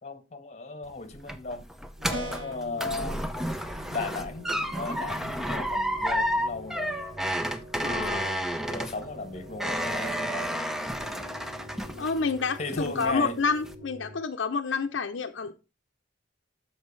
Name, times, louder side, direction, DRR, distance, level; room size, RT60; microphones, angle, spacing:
voice 1, 0.0-1.7 2.1-3.3 3.9-4.5 4.8-7.0 8.1-10.6 12.6-13.4, left 3 dB, 35° left, 1.0 m, -36 dB
sound 1, 0.8-12.4 12.7-13.2 13.6-13.7, equal, ahead, 0.5 m, -31 dB
sound 2, 2.0-14.2, equal, 40° right, 3.3 m, -47 dB
sound 3, 2.1-2.7, right 1 dB, 80° right, 2.6 m, -36 dB
voice 2, 7.8-8.4 12.0-15.5, left 4 dB, 85° left, 0.6 m, -29 dB
12.5 x 4.6 x 3.2 m
head